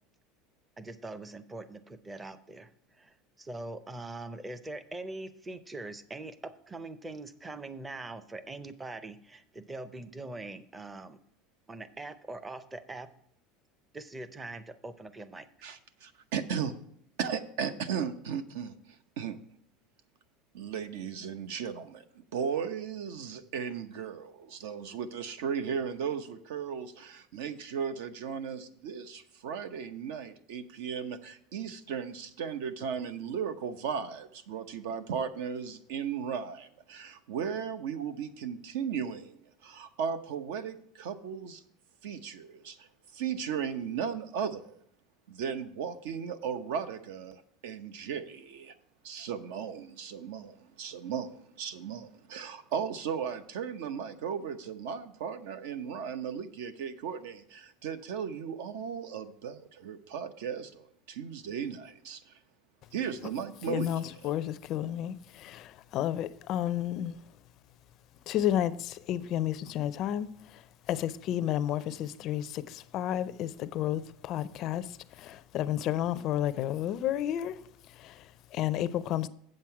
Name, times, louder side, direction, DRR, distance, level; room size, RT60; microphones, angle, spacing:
voice 1, 0.8-11.2 11.7-13.1 13.9-15.5, right 2 dB, 10° right, 0.5 m, -42 dB
voice 2, 15.6-16.7 17.2-19.4 20.5-41.6 42.0-42.9 43.1-44.8 45.3-48.7 49.0-62.3 62.9-63.9 64.2-64.3, right 7 dB, 80° right, 0.8 m, -36 dB
voice 3, 63.7-67.2 68.3-77.6 77.9-79.3, left 11 dB, 45° left, 0.4 m, -32 dB
7.9 x 7.5 x 4.7 m
supercardioid pair, 150°, 0 cm